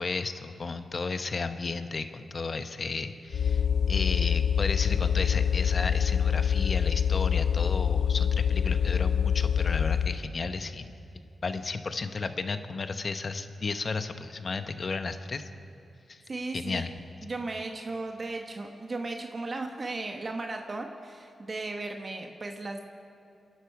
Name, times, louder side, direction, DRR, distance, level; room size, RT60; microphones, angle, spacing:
voice 1, 0.0-10.9 11.4-15.5 16.1-16.2 16.5-16.9, left 4 dB, 50° left, 9 dB, 1.0 m, -33 dB
sound 1, 3.3-10.2, left 8 dB, 80° left, 0.5 m, -25 dB
voice 2, 16.3-16.8 17.2-22.8, right 2 dB, 45° right, 3 dB, 1.2 m, -36 dB
27.0 x 11.0 x 4.8 m, 2.7 s
cardioid pair, 55°, 0 cm